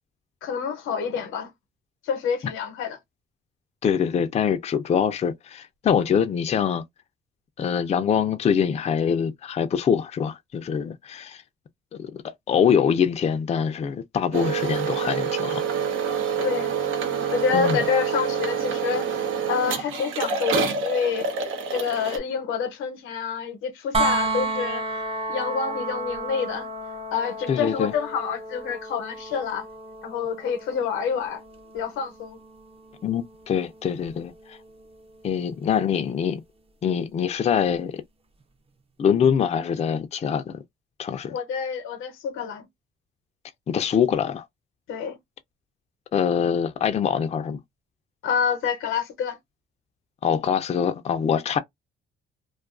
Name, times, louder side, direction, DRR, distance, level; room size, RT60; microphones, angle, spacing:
voice 1, 0.4-1.5 2.0-3.0 16.4-16.7 17.3-19.1 19.5-21.3 21.7-24.8 25.3-26.7 27.1-29.7 30.0-31.4 31.7-32.4 41.3-42.6 44.9-45.2 48.2-49.4, left 6 dB, 90° left, 0.7 m, -27 dB
voice 2, 3.8-6.8 7.6-11.4 12.0-12.2 12.5-15.6 17.5-17.8 27.5-27.9 33.0-34.6 35.2-36.4 36.8-38.0 39.0-40.6 41.0-41.4 43.7-44.4 46.1-47.6 50.2-51.6, left 7 dB, 35° left, 0.4 m, -24 dB
sound 1, 14.3-22.2, right 6 dB, 85° right, 0.7 m, -27 dB
sound 2, 23.9-35.8 37.7-37.8, right 2 dB, 30° right, 0.5 m, -33 dB
2.3 x 2.3 x 2.3 m
cardioid pair, 90°, 20 cm